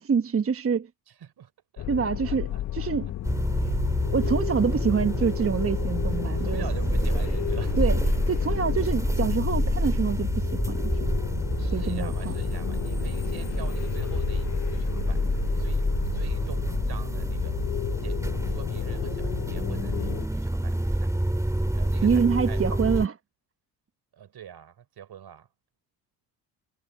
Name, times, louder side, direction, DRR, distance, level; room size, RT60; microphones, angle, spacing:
voice 1, 0.0-0.9 1.9-2.5 2.7-3.1 4.1-6.6 7.8-8.0 8.3-10.9 11.7-12.3 22.0-23.2, right 6 dB, 30° right, 1.2 m, -26 dB
voice 2, 1.1-3.1 6.1-7.8 11.6-17.7 18.0-21.1 21.7-22.6 24.1-25.5, right 9 dB, 60° right, 4.5 m, -45 dB
sound 1, 1.8-20.3, left 13 dB, 40° left, 0.5 m, -32 dB
sound 2, 3.2-23.1, right 1 dB, 5° right, 2.2 m, -28 dB
supercardioid pair, 60°, 44 cm